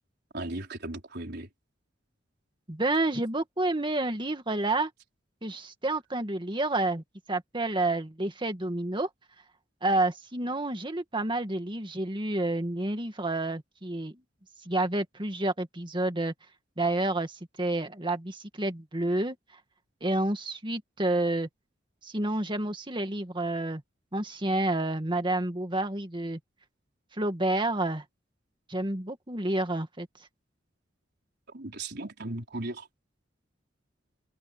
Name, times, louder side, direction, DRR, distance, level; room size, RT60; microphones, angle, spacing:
voice 1, 0.3-1.5 31.5-32.9, right 2 dB, 60° right, 4.4 m, -36 dB
voice 2, 2.7-4.9 5.4-9.1 9.8-14.2 14.7-16.3 16.8-19.4 20.0-21.5 22.0-23.8 24.1-26.4 27.2-28.0 28.7-30.1, right 2 dB, 25° right, 2.1 m, -29 dB
head